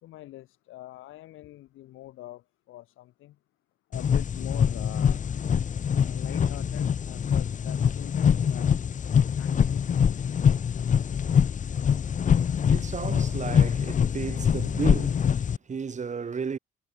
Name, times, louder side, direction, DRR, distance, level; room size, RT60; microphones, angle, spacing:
voice 1, 0.0-3.4 3.9-5.2 5.9-8.8 9.4-10.3, left 15 dB, 90° left, 3.8 m, -44 dB
sound 1, 3.9-15.6, left 7 dB, 40° left, 0.7 m, -24 dB
voice 2, 12.7-16.6, right 6 dB, 35° right, 2.4 m, -34 dB
cardioid pair, 90°, 20 cm